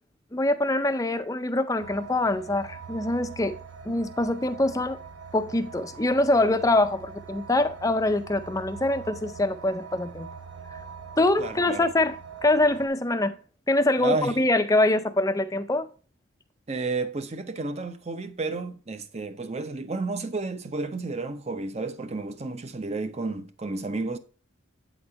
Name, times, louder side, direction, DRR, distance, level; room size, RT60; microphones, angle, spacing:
voice 1, 0.3-3.6 3.9-5.0 5.3-10.3 11.2-12.2 12.4-13.4 13.7-15.9, left 2 dB, 15° left, 0.5 m, -24 dB
sound 1, 1.8-12.9, right 6 dB, 80° right, 1.3 m, -43 dB
voice 2, 11.4-11.9 14.0-14.4 16.7-24.2, right 3 dB, 30° right, 0.6 m, -31 dB
8.6 x 4.1 x 4.5 m
head